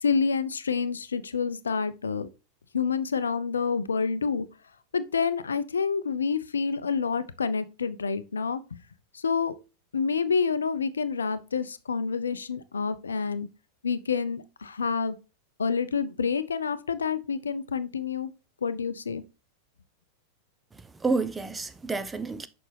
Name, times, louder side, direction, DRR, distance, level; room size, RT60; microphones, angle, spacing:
voice 1, 0.0-2.3 2.7-4.5 4.9-8.8 9.1-9.5 9.9-13.5 13.8-15.2 15.6-18.3 18.6-19.2, left 5 dB, 70° left, 0.4 m, -28 dB
voice 2, 20.7-22.5, right 3 dB, 10° right, 0.4 m, -30 dB
6.4 x 5.1 x 3.3 m
figure-of-eight pair, 90°, 0 cm